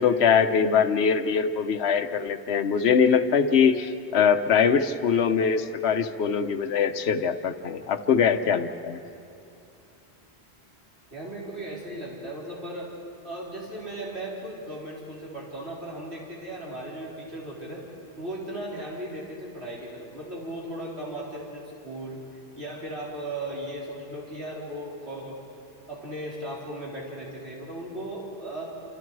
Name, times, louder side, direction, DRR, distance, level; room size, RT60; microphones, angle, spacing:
voice 1, 0.0-9.0, left 6 dB, 75° left, 7 dB, 1.1 m, -22 dB
voice 2, 11.1-12.9 13.2-17.8 18.2-25.4 25.9-28.7, right 1 dB, 75° right, -5 dB, 4.4 m, -37 dB
30.0 x 27.5 x 4.7 m, 2.6 s
omnidirectional pair, 1.1 m